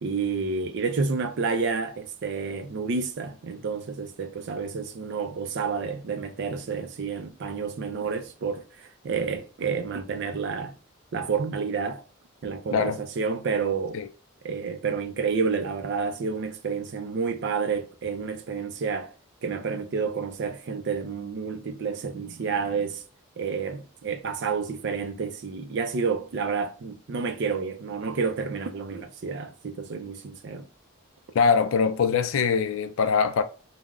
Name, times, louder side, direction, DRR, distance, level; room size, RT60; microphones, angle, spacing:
voice 1, 0.0-10.7 11.1-12.0 12.4-14.0 14.4-19.1 19.4-23.0 23.4-30.7, right 5 dB, 55° right, 0.4 m, -29 dB
voice 2, 31.3-33.4, left 5 dB, 70° left, 0.3 m, -22 dB
2.3 x 2.0 x 3.5 m
head